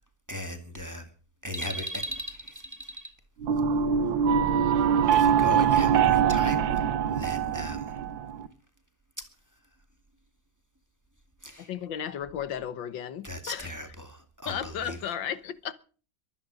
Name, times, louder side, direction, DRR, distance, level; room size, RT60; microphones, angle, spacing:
voice 1, 0.3-1.1 1.4-3.1 5.1-6.9 7.1-7.9 11.4-11.7 13.2-15.0, equal, 10° right, 2.1 m, -37 dB
sound 1, 3.4-8.5, right 8 dB, 90° right, 1.7 m, -23 dB
voice 2, 11.6-13.7 14.5-15.7, left 9 dB, 90° left, 1.8 m, -34 dB
23.0 x 9.5 x 6.2 m
omnidirectional pair, 2.0 m